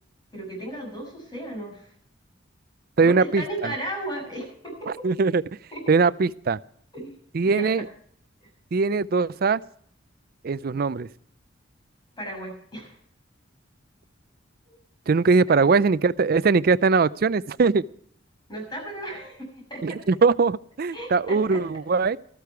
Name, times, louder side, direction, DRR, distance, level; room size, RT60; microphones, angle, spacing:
voice 1, 0.3-1.9 3.0-5.0 5.7-5.8 6.9-7.1 7.4-7.9 12.2-13.0 14.7-14.8 15.5-15.7 18.5-20.0 20.9-21.6, right 1 dB, 25° left, 1 dB, 6.2 m, -35 dB
voice 2, 3.0-3.7 5.0-5.4 5.9-6.6 7.3-7.8 8.7-9.6 10.4-11.1 15.1-17.8 19.8-22.2, right 4 dB, 50° right, 17 dB, 0.4 m, -21 dB
14.0 x 13.5 x 4.6 m, 0.63 s
head